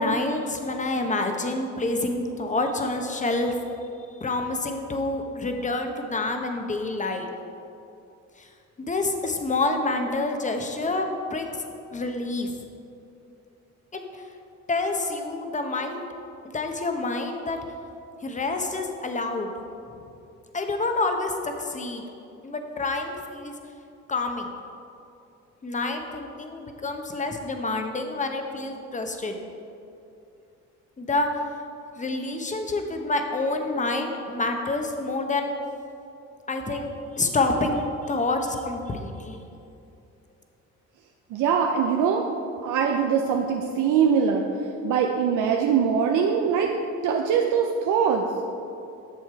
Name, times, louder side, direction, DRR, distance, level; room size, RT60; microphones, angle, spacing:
voice 1, 0.0-3.7 4.2-7.3 8.4-8.5 8.8-11.6 11.9-12.5 13.9-14.2 14.7-16.0 16.5-17.6 18.2-19.5 20.5-22.0 22.4-23.5 24.1-24.5 25.6-29.4 31.0-31.3 32.0-35.5 36.5-39.5, left 2 dB, 25° left, 4 dB, 0.9 m, -28 dB
voice 2, 41.3-42.2 42.6-44.4 44.8-46.7 47.0-48.3, right 7 dB, 85° right, 2 dB, 0.6 m, -22 dB
7.7 x 6.5 x 4.6 m, 2.7 s
cardioid pair, 90°, 30 cm